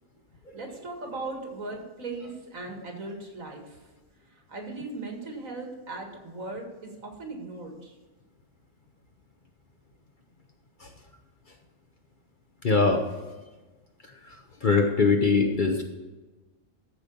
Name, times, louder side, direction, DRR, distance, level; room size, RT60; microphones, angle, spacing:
voice 1, 0.5-3.9 4.2-8.0, right 3 dB, 70° right, 1 dB, 2.4 m, -38 dB
voice 2, 12.6-13.1 14.0-15.8, left 4 dB, 40° left, 3 dB, 0.9 m, -23 dB
13.5 x 4.9 x 5.4 m, 1.2 s
omnidirectional pair, 1.4 m